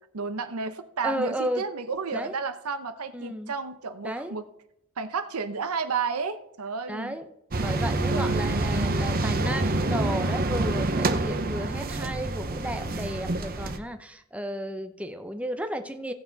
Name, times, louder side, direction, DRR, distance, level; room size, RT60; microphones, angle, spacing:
voice 1, 0.1-4.4 5.0-7.1 8.1-8.4, right 5 dB, 85° right, 10 dB, 0.8 m, -32 dB
voice 2, 1.0-1.6 2.1-2.3 3.1-3.5 4.0-4.3 6.9-7.3 7.6-16.1, equal, 5° right, 7 dB, 0.7 m, -33 dB
sound 1, 7.5-13.8, right 2 dB, 45° right, 0.8 m, -27 dB
17.0 x 6.9 x 4.0 m, 0.78 s
head